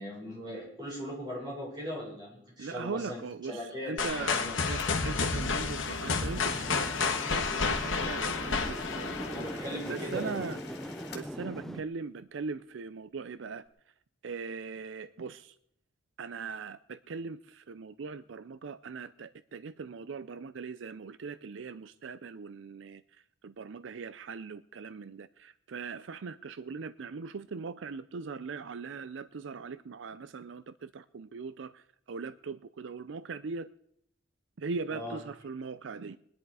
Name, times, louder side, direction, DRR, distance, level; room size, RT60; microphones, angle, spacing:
voice 1, 0.0-3.2 3.5-4.6 9.3-10.3 34.9-35.2, equal, 20° right, 6.1 m, -39 dB
voice 2, 2.6-4.4 4.7-10.6 11.1-13.6 14.2-15.6 16.2-33.7 34.6-36.2, right 4 dB, 75° right, 0.5 m, -40 dB
sound 1, 4.0-9.9, left 4 dB, 85° left, 1.6 m, -31 dB
sound 2, 4.8-11.4, left 4 dB, 55° left, 2.1 m, -48 dB
sound 3, 6.0-11.8, equal, ahead, 0.5 m, -41 dB
20.5 x 10.5 x 4.8 m
head